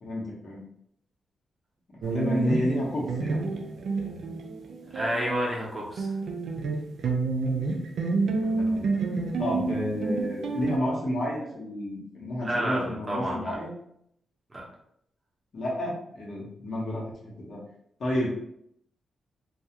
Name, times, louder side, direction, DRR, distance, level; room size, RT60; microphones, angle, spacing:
voice 1, 0.0-0.6 2.0-3.4 8.3-8.9 9.4-13.7 15.5-17.6 18.0-18.3, equal, 55° left, -4 dB, 1.0 m, -30 dB
sound 1, 2.0-5.3 5.5-10.8, right 3 dB, 75° right, 0.4 m, -29 dB
voice 2, 4.9-6.1 12.4-13.6 14.5-14.6, right 1 dB, 20° right, -4 dB, 0.8 m, -30 dB
2.3 x 2.3 x 2.8 m, 0.71 s
cardioid pair, 110°, 0 cm